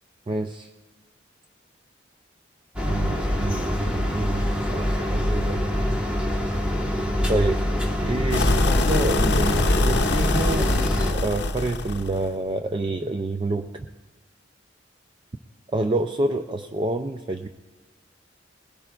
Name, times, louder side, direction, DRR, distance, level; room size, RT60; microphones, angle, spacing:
voice 1, 0.3-0.7 2.9-5.6 7.3-7.6 8.0-10.8 11.1-13.9 15.7-17.5, right 2 dB, 25° right, 7 dB, 0.4 m, -28 dB
sound 1, 2.8-11.1, equal, 5° right, 1.3 m, -25 dB
sound 2, 8.3-12.3, left 2 dB, 60° left, 0.7 m, -23 dB
20.5 x 16.5 x 2.4 m, 1.2 s
head